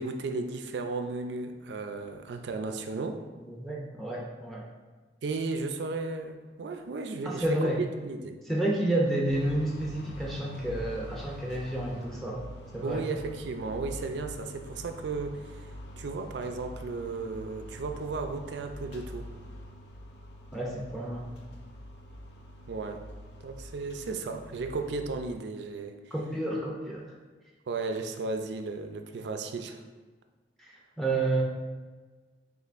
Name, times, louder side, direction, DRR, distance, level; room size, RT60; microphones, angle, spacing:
voice 1, 0.0-3.2 5.2-8.4 12.8-19.3 22.7-23.0 23.4-26.1 27.7-29.8, right 3 dB, 80° right, 6 dB, 0.4 m, -35 dB
voice 2, 3.4-4.6 7.2-7.8 8.5-12.4 12.7-13.1 20.5-21.3 26.1-27.1 30.6-31.4, right 1 dB, ahead, -3 dB, 0.4 m, -30 dB
sound 1, 9.3-25.4, equal, 75° left, 0.6 m, -45 dB
6.5 x 2.5 x 2.5 m, 1.4 s
head